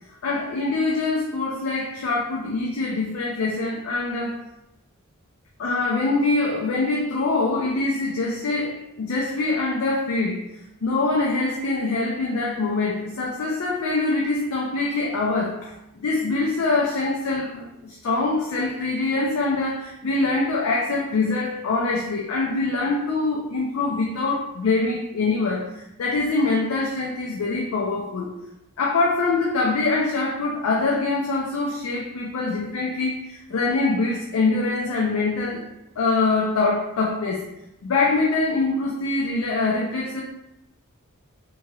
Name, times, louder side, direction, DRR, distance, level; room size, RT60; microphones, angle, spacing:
voice 1, 0.2-4.4 5.6-10.4 10.8-28.3 28.8-35.6 36.0-37.4 37.8-40.2, left 3 dB, 80° left, -2 dB, 0.4 m, -24 dB
3.0 x 2.8 x 2.3 m, 0.89 s
head